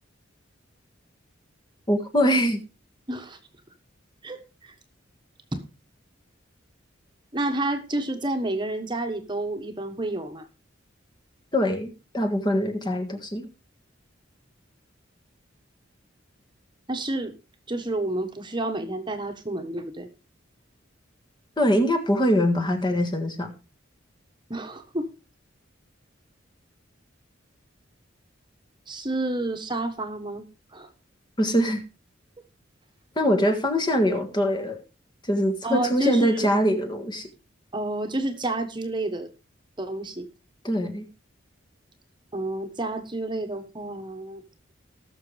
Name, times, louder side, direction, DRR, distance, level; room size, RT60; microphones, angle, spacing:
voice 1, 1.9-2.6 11.5-13.5 21.6-23.5 31.4-31.8 33.1-34.8 35.2-37.3 40.6-41.0, equal, 25° left, 6 dB, 1.6 m, -23 dB
voice 2, 3.1-3.4 4.2-4.7 5.5-5.6 7.3-10.4 16.9-17.3 17.7-20.1 24.5-25.0 28.9-30.4 30.7-30.9 35.6-36.5 37.7-39.3 39.8-40.3 42.3-44.4, right 2 dB, 25° right, 6 dB, 1.3 m, -29 dB
19.5 x 6.6 x 3.3 m, 0.30 s
head